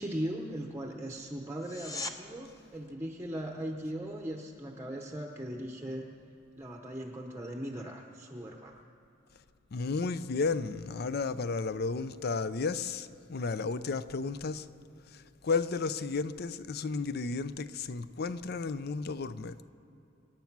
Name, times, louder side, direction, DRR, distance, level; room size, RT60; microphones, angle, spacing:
voice 1, 0.0-6.0 6.6-8.8, right 1 dB, 10° right, 0.8 m, -39 dB
sound 1, 1.6-2.2 13.5-13.6, left 3 dB, 20° left, 0.8 m, -38 dB
voice 2, 9.7-14.7 15.1-19.5, left 4 dB, 50° left, 0.5 m, -33 dB
25.5 x 9.2 x 6.0 m
head